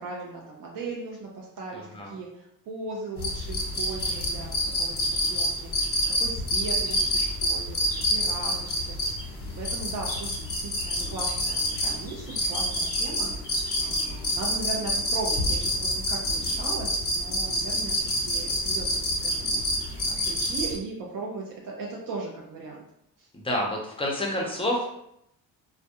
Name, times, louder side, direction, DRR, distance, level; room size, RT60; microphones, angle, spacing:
voice 1, 0.0-9.0 9.6-22.8 23.2-23.3, right 3 dB, 60° right, -2 dB, 0.6 m, -38 dB
voice 2, 1.7-2.1 23.3-24.8, left 1 dB, 15° left, -1 dB, 0.6 m, -29 dB
sound 1, 3.2-20.8, equal, 35° left, 0.9 m, -27 dB
2.2 x 2.1 x 2.8 m, 0.77 s
cardioid pair, 105°, 36 cm